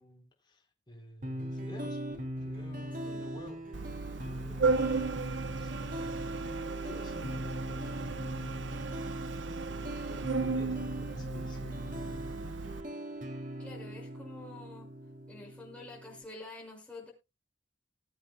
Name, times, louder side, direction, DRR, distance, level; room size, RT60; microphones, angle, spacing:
voice 1, 0.0-2.0 2.4-3.6 4.2-4.9 5.4-9.4 9.6-12.5, left 1 dB, 25° left, 4.0 m, -52 dB
sound 1, 1.2-16.2, equal, 45° right, 2.2 m, -40 dB
Organ, 3.7-12.8, right 4 dB, 80° right, 0.8 m, -35 dB
voice 2, 13.6-14.9 15.3-17.1, left 2 dB, 5° left, 5.7 m, -48 dB
20.5 x 8.0 x 2.2 m
head